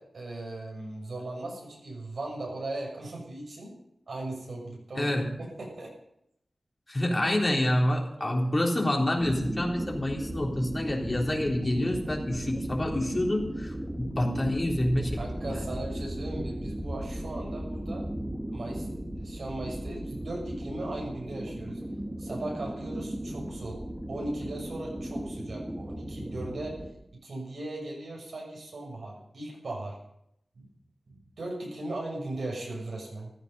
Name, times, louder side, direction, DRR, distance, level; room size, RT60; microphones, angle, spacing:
voice 1, 0.0-3.8 4.1-5.9 8.2-8.3 15.2-18.1 18.5-21.8 22.2-26.8 27.2-30.0 30.5-30.7 31.1-33.3, right 2 dB, 80° right, -1 dB, 6.7 m, -38 dB
voice 2, 5.0-5.3 6.9-15.2 15.4-15.6, left 1 dB, 30° left, -1 dB, 3.6 m, -27 dB
sound 1, 9.2-26.9, right 1 dB, 20° right, 2.2 m, -36 dB
15.0 x 13.0 x 5.5 m, 0.77 s
wide cardioid pair, 70°, 0 cm